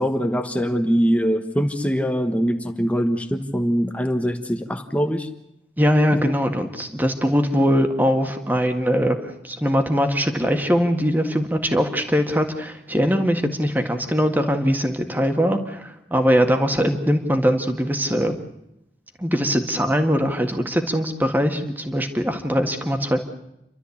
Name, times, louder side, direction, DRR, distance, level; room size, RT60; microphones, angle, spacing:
voice 1, 0.0-5.3, equal, 10° left, 6 dB, 1.2 m, -22 dB
voice 2, 5.8-18.3 19.2-23.3, equal, 10° right, 5 dB, 1.8 m, -21 dB
29.5 x 13.0 x 8.5 m, 0.84 s
head